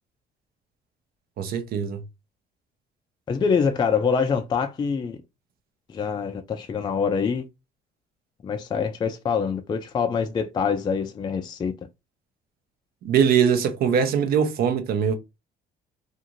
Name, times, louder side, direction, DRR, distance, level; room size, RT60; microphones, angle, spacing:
voice 1, 1.4-2.0 13.0-15.2, right 7 dB, 65° right, 0.6 m, -22 dB
voice 2, 3.3-5.2 5.9-7.4 8.4-11.7, left 6 dB, 25° left, 0.4 m, -25 dB
2.5 x 2.5 x 2.8 m
cardioid pair, 110°, 17 cm